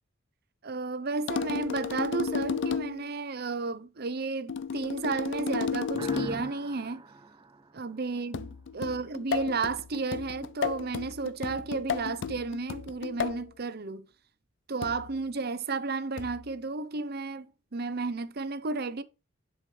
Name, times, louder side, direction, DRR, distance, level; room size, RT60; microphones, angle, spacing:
voice 1, 0.6-7.0 7.7-14.1 14.7-19.0, right 3 dB, 55° right, 0.8 m, -33 dB
sound 1, 1.3-3.1 4.5-6.5 8.3-13.5 14.8-15.2 16.2-16.5, left 6 dB, 65° left, 0.4 m, -33 dB
sound 2, 5.9-8.6, right 2 dB, 20° right, 0.5 m, -43 dB
10.5 x 5.1 x 3.3 m
head